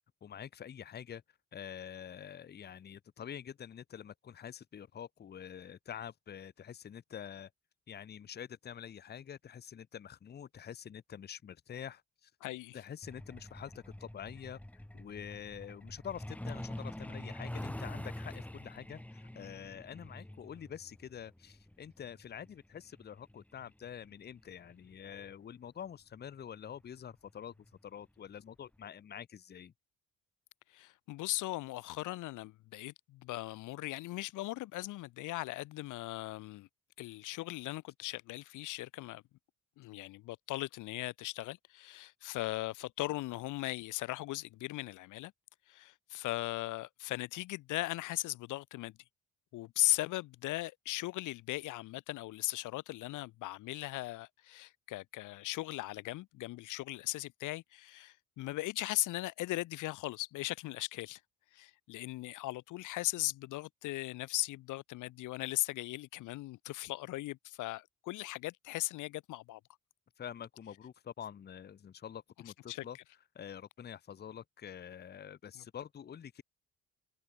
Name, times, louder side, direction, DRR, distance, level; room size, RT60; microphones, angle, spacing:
voice 1, 0.2-1.2 1.5-7.5 7.9-12.3 12.7-14.6 14.9-27.5 27.8-29.7 70.2-73.0 73.3-76.4, left 9 dB, 35° left, 0.6 m, -46 dB
voice 2, 12.4-12.8 30.7-36.7 37.0-39.2 39.8-45.3 45.7-48.9 49.5-61.2 61.5-69.6 72.7-72.9 75.5-75.6, left 18 dB, 85° left, 0.7 m, -38 dB
Truck, 13.0-25.3 26.5-26.7 27.1-27.3 27.7-27.9 28.3-28.4 28.8-28.9, left 1 dB, 5° left, 1.4 m, -46 dB
cardioid pair, 90°, 30 cm